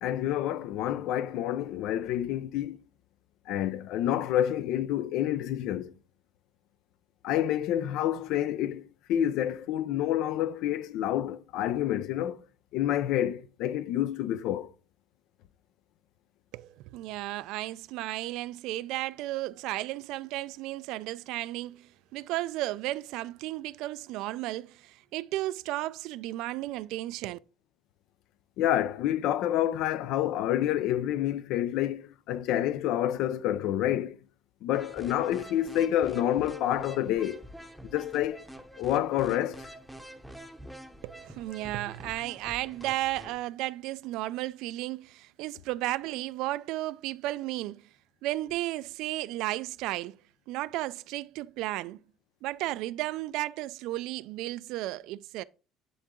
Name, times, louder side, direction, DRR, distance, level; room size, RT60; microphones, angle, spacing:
voice 1, 0.0-2.8 3.5-5.9 7.2-12.4 12.7-14.7 28.6-34.2 34.6-37.4 37.9-38.4 38.8-39.7, left 12 dB, 70° left, 0.5 m, -28 dB
voice 2, 16.5-27.4 41.0-47.9 48.2-50.2 50.5-52.0 52.4-55.4, right 16 dB, 75° right, 0.4 m, -34 dB
sound 1, 34.7-43.4, right 1 dB, ahead, 0.8 m, -46 dB
10.0 x 3.9 x 3.7 m
cardioid pair, 150°, 0 cm